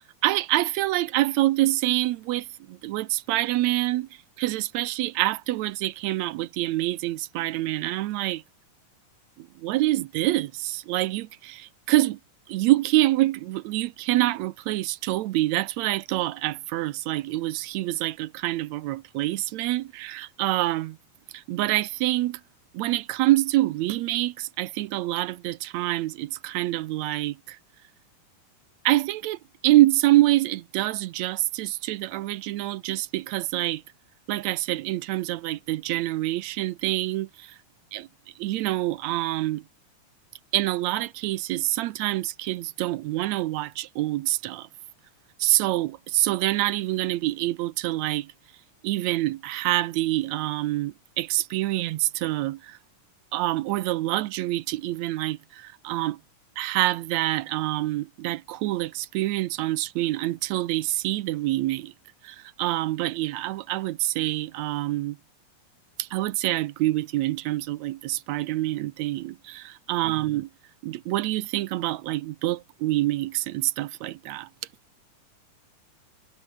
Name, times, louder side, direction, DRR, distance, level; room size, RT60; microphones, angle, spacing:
voice 1, 0.2-4.1 4.4-8.4 9.4-12.2 12.5-21.0 21.3-22.4 22.7-27.6 28.8-33.8 34.3-37.6 37.9-38.1 38.4-39.6 40.5-44.7 45.4-48.3 48.8-52.8 53.3-56.2 56.6-61.9 62.2-65.2 66.0-70.5 70.8-74.5, right 16 dB, 75° right, 1.7 m, -26 dB
omnidirectional pair, 3.7 m